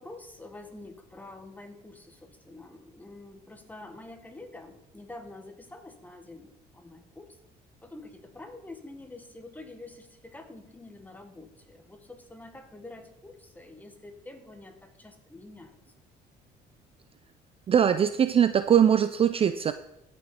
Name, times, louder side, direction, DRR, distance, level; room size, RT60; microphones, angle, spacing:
voice 1, 0.0-7.4 7.8-15.8, left 2 dB, 10° left, 5 dB, 1.5 m, -47 dB
voice 2, 17.7-19.7, right 8 dB, 35° right, 11 dB, 0.4 m, -21 dB
15.0 x 6.5 x 4.3 m, 0.86 s
cardioid pair, 110°, 17 cm